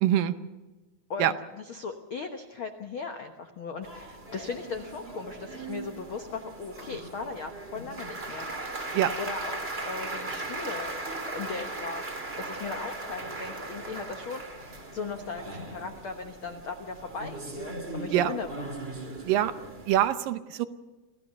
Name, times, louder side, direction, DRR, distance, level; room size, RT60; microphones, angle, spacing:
voice 1, 0.0-0.3 1.2-1.3 8.9-9.1 18.1-18.3 19.2-19.5 19.9-20.7, right 12 dB, 75° right, 11 dB, 2.4 m, -24 dB
voice 2, 1.1-8.5 9.2-11.0 11.3-14.4 14.9-18.7, left 4 dB, 75° left, 5 dB, 1.2 m, -38 dB
sound 1, 3.8-20.1, right 2 dB, 20° right, 1.7 m, -38 dB
26.5 x 16.5 x 6.8 m, 1.1 s
omnidirectional pair, 4.2 m